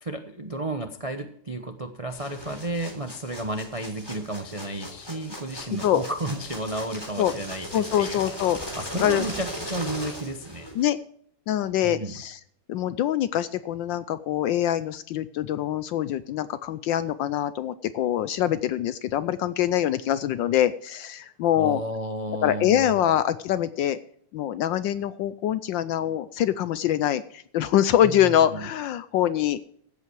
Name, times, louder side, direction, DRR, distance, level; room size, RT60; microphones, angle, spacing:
voice 1, 0.0-10.7 11.8-12.2 21.5-23.1 28.0-28.7, right 2 dB, 60° right, 5 dB, 0.3 m, -33 dB
sound 1, 2.1-10.8, equal, 10° left, 3.3 m, -38 dB
voice 2, 7.7-8.6 9.0-9.2 10.8-11.0 11.5-12.4 12.7-21.8 22.4-24.0 24.3-29.6, left 11 dB, 75° left, 14 dB, 1.1 m, -24 dB
15.0 x 8.4 x 4.6 m, 0.65 s
omnidirectional pair, 2.4 m